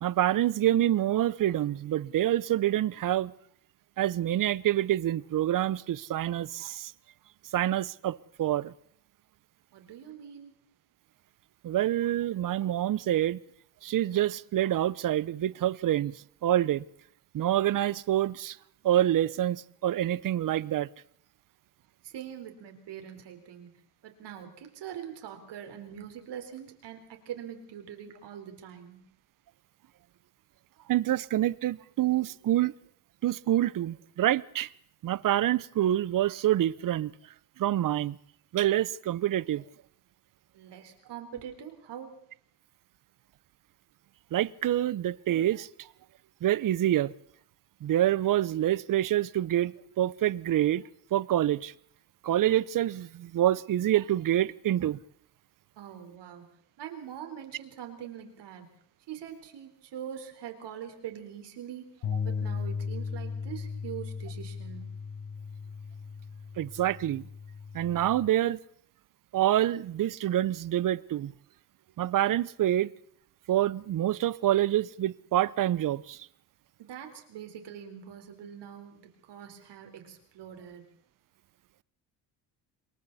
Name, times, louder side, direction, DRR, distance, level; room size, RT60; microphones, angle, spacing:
voice 1, 0.0-3.3 4.0-6.9 7.5-8.7 11.6-13.4 13.8-16.8 17.3-18.6 18.8-20.9 30.9-32.7 33.2-34.7 35.0-37.1 37.6-38.2 38.5-39.6 44.3-45.7 46.4-47.1 47.8-50.8 51.1-51.7 52.2-55.0 66.6-67.3 67.7-68.6 69.3-71.3 72.0-72.9 73.5-76.3, right 12 dB, 45° right, 0.8 m, -27 dB
voice 2, 9.7-10.5 22.0-23.7 24.0-29.0 40.5-42.2 55.8-56.5 56.8-58.7 59.1-61.9 62.2-64.9 76.8-80.8, right 9 dB, 65° right, 4.4 m, -43 dB
Bass guitar, 62.0-68.3, left 5 dB, 60° left, 5.5 m, -36 dB
28.0 x 22.5 x 4.2 m
cardioid pair, 100°, 44 cm